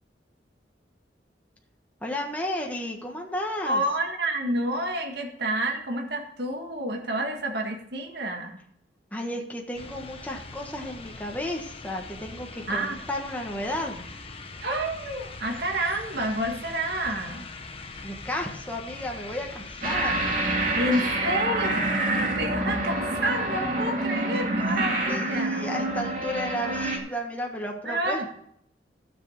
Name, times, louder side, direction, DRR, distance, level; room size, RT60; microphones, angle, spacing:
voice 1, 2.0-3.8 9.1-14.1 18.0-20.1 25.1-28.3, left 1 dB, 10° left, 0 dB, 1.4 m, -33 dB
voice 2, 3.7-8.6 12.7-13.0 14.6-17.5 20.7-21.9 22.4-25.7 27.9-28.3, right 1 dB, 65° right, 2 dB, 1.8 m, -29 dB
sound 1, 9.7-20.9, left 3 dB, 35° left, 1.0 m, -42 dB
sound 2, 19.8-27.0, right 2 dB, 50° right, 2.4 m, -27 dB
12.5 x 7.3 x 6.4 m, 0.69 s
head